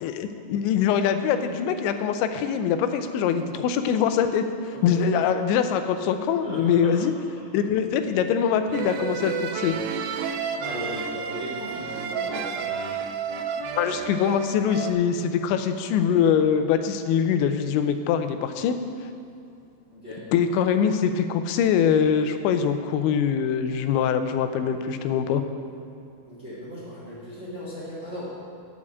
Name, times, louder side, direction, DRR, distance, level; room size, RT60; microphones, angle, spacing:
voice 1, 0.0-7.1 7.5-9.8 13.7-18.8 20.3-25.4, left 7 dB, 90° left, 8 dB, 3.0 m, -23 dB
voice 2, 4.7-5.0 6.4-7.0 10.6-12.6 19.9-20.2 26.2-28.3, equal, 50° right, -8 dB, 0.8 m, -37 dB
sound 1, 8.7-14.9, right 6 dB, 80° right, 2.4 m, -31 dB
11.0 x 5.0 x 8.3 m, 2.7 s
omnidirectional pair, 5.1 m